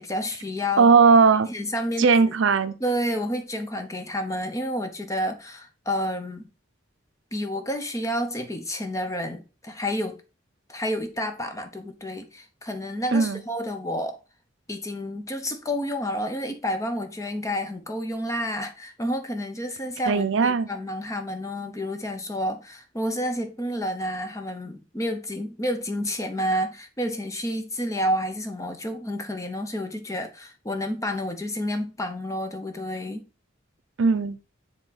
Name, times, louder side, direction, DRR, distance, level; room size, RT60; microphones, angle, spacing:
voice 1, 0.0-0.9 1.5-2.3 2.8-6.5 7.3-10.2 10.7-14.2 14.7-33.2, equal, 15° left, 0.7 m, -30 dB
voice 2, 0.8-1.5 2.0-2.7 13.1-13.4 20.1-20.7 34.0-34.4, right 5 dB, 70° right, 0.5 m, -18 dB
6.9 x 3.7 x 4.0 m
head